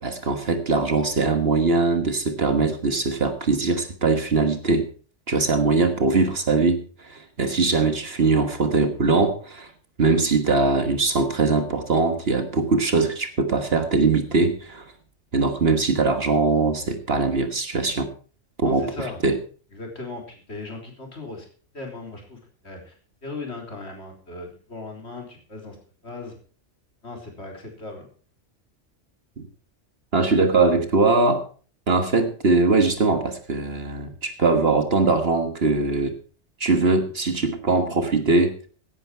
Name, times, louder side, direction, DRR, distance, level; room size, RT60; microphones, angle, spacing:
voice 1, 0.0-4.9 5.3-9.7 10.0-14.9 15.3-18.1 18.6-18.9 19.2-19.4 29.4-29.5 30.1-31.4 31.9-36.1 36.6-38.7, right 3 dB, 55° right, 8 dB, 1.6 m, -21 dB
voice 2, 18.6-19.2 19.7-21.5 21.7-22.4 22.6-22.9 23.2-25.8 26.0-26.3 27.0-28.0, left 3 dB, 60° left, 2 dB, 4.0 m, -37 dB
16.0 x 10.0 x 4.6 m, 0.39 s
omnidirectional pair, 1.3 m